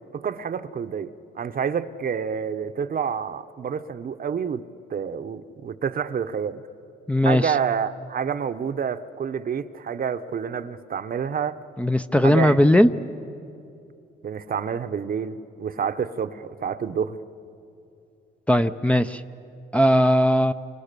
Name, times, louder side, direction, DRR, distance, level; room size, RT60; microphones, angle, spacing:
voice 1, 0.1-4.6 4.9-6.6 7.2-11.6 12.2-12.9 14.2-17.2, right 7 dB, 45° right, 10 dB, 0.9 m, -28 dB
voice 2, 7.1-7.5 11.8-12.9 18.5-19.2 19.7-20.5, left 1 dB, 5° left, 6 dB, 0.6 m, -18 dB
29.0 x 26.0 x 6.8 m, 2.7 s
cardioid pair, 90°, 20 cm